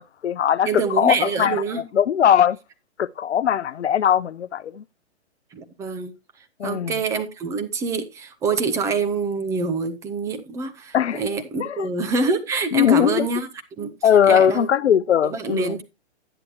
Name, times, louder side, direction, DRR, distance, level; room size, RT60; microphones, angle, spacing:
voice 1, 0.0-1.6 1.9-2.6 3.0-4.8 6.6-6.9 10.9-11.2 11.6-11.9 12.7-13.3 14.0-15.8, left 9 dB, 85° left, 0.7 m, -20 dB
voice 2, 0.7-1.8 5.5-6.1 6.6-13.5 13.8-13.9 14.3-14.7 15.2-15.8, right 4 dB, 10° right, 0.6 m, -26 dB
11.0 x 9.8 x 2.8 m
hypercardioid pair, 145°, 34 cm